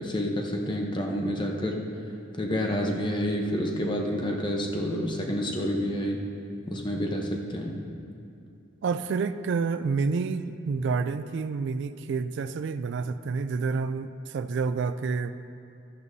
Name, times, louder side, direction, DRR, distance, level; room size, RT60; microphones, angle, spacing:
voice 1, 0.0-1.8 2.3-6.2 6.7-7.8, equal, 20° left, 1 dB, 0.9 m, -29 dB
voice 2, 8.8-15.3, right 4 dB, 55° right, 11 dB, 0.3 m, -29 dB
12.5 x 11.0 x 2.7 m, 2.7 s
head